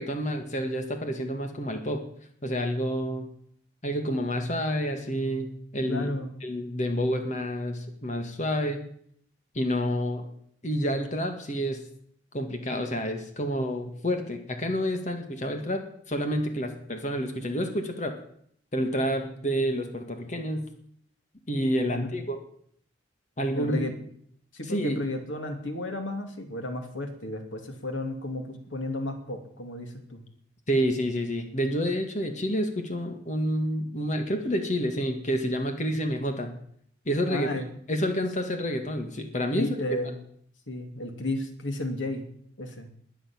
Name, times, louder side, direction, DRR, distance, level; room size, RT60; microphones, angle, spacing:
voice 1, 0.0-2.0 2.4-3.3 3.8-6.1 6.4-8.8 9.5-10.3 10.6-11.8 12.3-18.1 18.7-20.7 21.5-22.4 23.4-23.8 24.6-25.0 30.7-36.5 37.1-37.5 37.9-39.8, equal, 40° left, 5 dB, 1.9 m, -29 dB
voice 2, 5.9-6.3 21.9-22.2 23.5-23.9 24.5-30.2 37.3-37.6 39.5-40.2 40.7-42.3 42.6-42.9, left 1 dB, 90° left, 5 dB, 2.7 m, -33 dB
20.5 x 7.2 x 8.7 m, 0.65 s
head